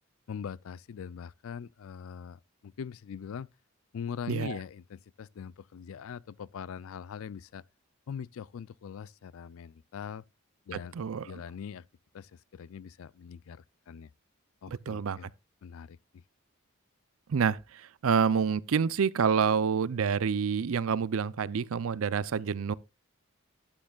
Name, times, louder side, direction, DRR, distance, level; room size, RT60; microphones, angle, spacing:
voice 1, 0.3-3.5 3.9-7.6 8.1-10.2 10.7-11.0 11.2-11.8 12.1-14.1 14.6-15.3 15.6-16.2, left 7 dB, 70° left, 0.4 m, -42 dB
voice 2, 4.3-4.6 10.9-11.4 14.7-15.2 17.3-22.7, right 6 dB, 70° right, 0.5 m, -28 dB
11.5 x 8.7 x 2.3 m
head